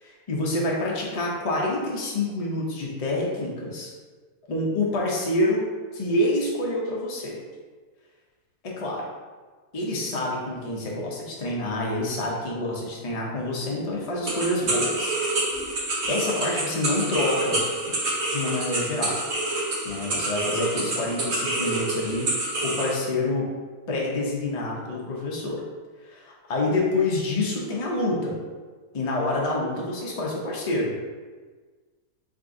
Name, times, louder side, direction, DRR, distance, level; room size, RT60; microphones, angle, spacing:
voice 1, 0.0-3.9 4.5-7.4 8.6-9.1 9.7-15.2 16.1-17.6 18.3-19.2 19.8-23.5 23.9-25.6 26.0-28.4 28.9-30.9, left 2 dB, 65° left, -3 dB, 0.3 m, -27 dB
sound 1, 14.3-23.0, right 2 dB, 55° right, 0.9 m, -27 dB
3.7 x 2.5 x 3.6 m, 1.4 s
omnidirectional pair, 1.7 m